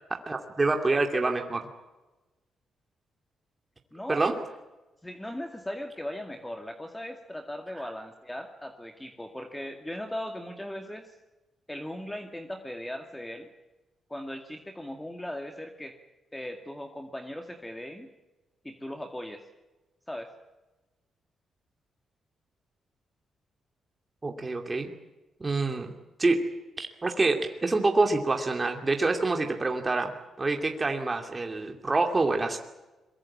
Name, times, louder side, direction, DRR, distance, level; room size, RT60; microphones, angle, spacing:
voice 1, 0.1-1.6 4.1-4.3 24.2-24.9 25.4-25.9 26.2-26.4 26.8-30.1 30.4-32.6, right 3 dB, 25° right, 3 dB, 2.6 m, -26 dB
voice 2, 3.9-4.4 5.0-11.0 11.7-13.5 14.1-15.9 16.3-18.1 18.6-19.4 20.1-20.3, left 1 dB, 10° left, 5 dB, 2.2 m, -38 dB
22.5 x 22.0 x 8.7 m, 1.1 s
cardioid pair, 80°, 0 cm